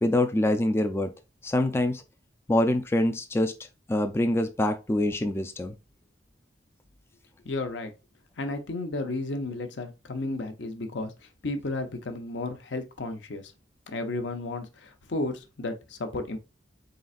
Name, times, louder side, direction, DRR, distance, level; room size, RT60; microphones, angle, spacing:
voice 1, 0.0-1.1 1.4-2.0 2.5-3.5 3.9-5.7, left 1 dB, 15° left, 0.3 m, -25 dB
voice 2, 7.4-7.9 8.4-13.5 13.9-16.4, left 2 dB, 75° left, 0.7 m, -33 dB
4.2 x 3.9 x 2.4 m
head